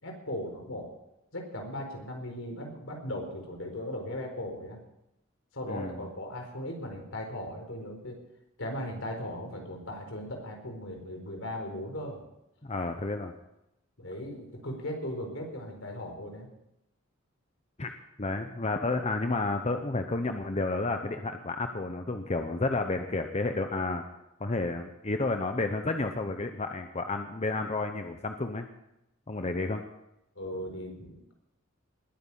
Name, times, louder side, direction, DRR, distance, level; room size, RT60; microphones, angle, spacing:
voice 1, 0.0-0.9 1.3-4.8 5.5-8.2 8.6-12.3 14.0-16.5 30.4-31.3, left 1 dB, 75° left, 3 dB, 4.4 m, -38 dB
voice 2, 5.7-6.1 12.6-13.3 17.8-24.0 24.4-28.7 29.3-29.8, left 3 dB, 35° left, 6 dB, 0.9 m, -31 dB
20.5 x 9.6 x 5.6 m, 0.87 s
head